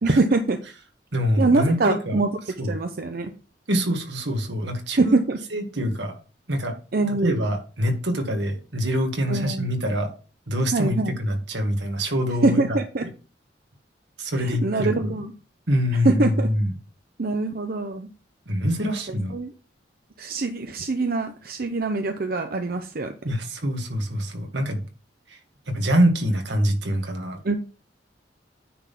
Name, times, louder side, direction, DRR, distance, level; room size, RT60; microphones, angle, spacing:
voice 1, 0.0-0.6 1.4-2.3 2.7-3.3 5.0-5.4 6.9-7.4 9.3-9.7 10.7-11.2 12.4-13.0 14.4-15.3 16.0-16.5 17.2-18.1 19.3-19.5 20.2-23.1 27.4-27.6, right 3 dB, 55° right, 0.7 m, -23 dB
voice 2, 1.1-2.2 2.6-2.7 3.7-5.2 5.5-6.1 6.5-6.7 7.1-10.1 10.5-12.8 14.2-15.2 15.7-16.8 18.5-19.3 23.2-24.8 25.3-25.4 25.7-27.6, equal, 80° right, 1.9 m, -25 dB
9.5 x 3.8 x 5.9 m
head